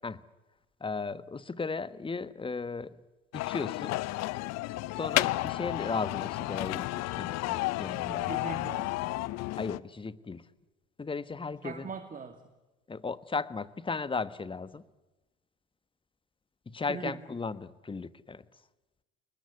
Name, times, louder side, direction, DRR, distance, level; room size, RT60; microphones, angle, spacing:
voice 1, 0.8-3.0 3.3-4.0 5.0-8.3 9.6-10.5 11.0-11.9 12.9-14.8 16.7-18.4, left 4 dB, 15° left, 1.4 m, -36 dB
sound 1, 3.3-9.8, left 19 dB, 50° left, 0.9 m, -32 dB
voice 2, 8.1-9.3 11.6-12.4 16.9-17.2, right 5 dB, 25° right, 2.4 m, -41 dB
29.5 x 20.0 x 9.6 m
hypercardioid pair, 75°, 34 cm